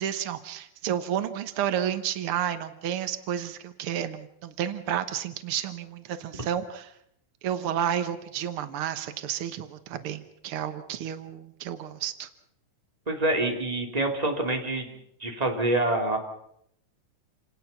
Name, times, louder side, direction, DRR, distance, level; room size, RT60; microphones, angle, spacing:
voice 1, 0.0-6.9 7.4-12.3, right 10 dB, 90° right, 10 dB, 1.2 m, -31 dB
voice 2, 13.1-14.9 15.2-16.2, right 2 dB, 10° right, 2 dB, 2.8 m, -26 dB
28.0 x 19.0 x 5.9 m, 0.73 s
omnidirectional pair, 4.2 m